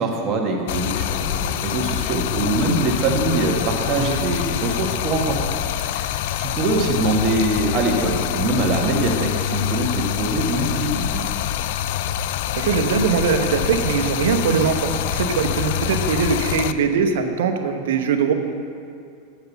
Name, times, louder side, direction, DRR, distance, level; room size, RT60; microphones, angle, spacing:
voice 1, 0.0-5.4 5.8-6.1 6.4-11.2, right 2 dB, 40° right, 1 dB, 1.5 m, -23 dB
Stream, 0.7-16.7, left 11 dB, 65° left, 0.3 m, -25 dB
voice 2, 3.9-4.3 12.5-18.3, right 6 dB, 80° right, 5 dB, 0.9 m, -21 dB
7.7 x 6.9 x 7.1 m, 2.4 s
supercardioid pair, 120°, 0 cm